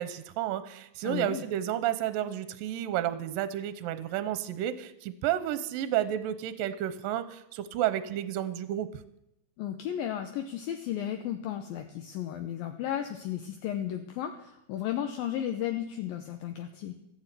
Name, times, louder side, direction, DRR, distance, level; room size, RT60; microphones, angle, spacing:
voice 1, 0.0-8.9, right 11 dB, 75° right, 12 dB, 2.3 m, -31 dB
voice 2, 1.0-1.4 9.6-17.0, left 11 dB, 75° left, 5 dB, 2.5 m, -34 dB
14.0 x 10.0 x 8.3 m, 0.81 s
omnidirectional pair, 4.5 m